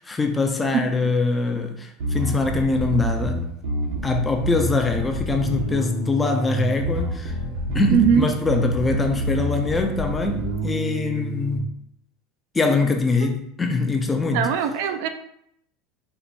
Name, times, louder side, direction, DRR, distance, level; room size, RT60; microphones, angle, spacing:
voice 1, 0.0-3.4 4.0-7.3 7.7-11.7 12.5-14.5, left 3 dB, 10° left, 0.4 m, -23 dB
voice 2, 0.7-1.1 7.9-8.3 14.3-15.1, right 8 dB, 60° right, 0.4 m, -21 dB
Bass guitar, 2.0-11.6, equal, 85° right, 1.2 m, -27 dB
4.5 x 2.6 x 4.1 m
supercardioid pair, 170°, 0 cm